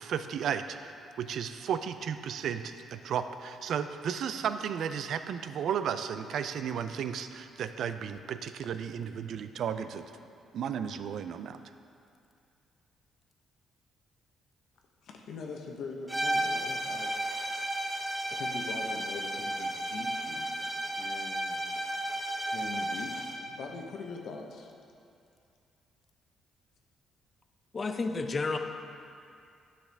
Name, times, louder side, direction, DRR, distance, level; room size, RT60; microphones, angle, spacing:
voice 1, 0.0-10.1 10.5-11.6, right 8 dB, 70° right, 10 dB, 0.3 m, -34 dB
voice 2, 15.0-17.1 18.3-20.7 21.0-21.6 22.5-24.7, left 4 dB, 70° left, 2 dB, 0.9 m, -42 dB
sound 1, 16.1-23.5, right 1 dB, 5° right, 0.7 m, -33 dB
voice 3, 27.7-28.6, left 3 dB, 35° left, 7 dB, 0.5 m, -31 dB
9.6 x 5.8 x 3.4 m, 2.5 s
cardioid pair, 90°, 0 cm